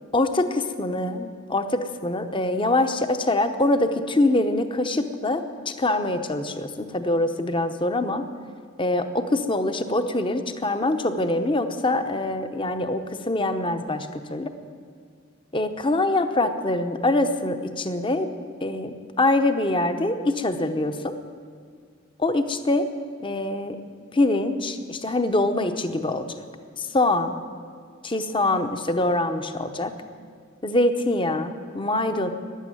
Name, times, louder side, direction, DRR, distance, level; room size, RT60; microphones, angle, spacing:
voice 1, 0.1-8.2 8.8-14.5 15.5-18.3 18.6-21.1 22.2-22.9 23.2-23.8 24.1-26.3 26.8-27.4 28.0-29.9 30.6-32.3, left 2 dB, 25° left, 9 dB, 0.9 m, -24 dB
15.0 x 10.5 x 9.1 m, 2.1 s
head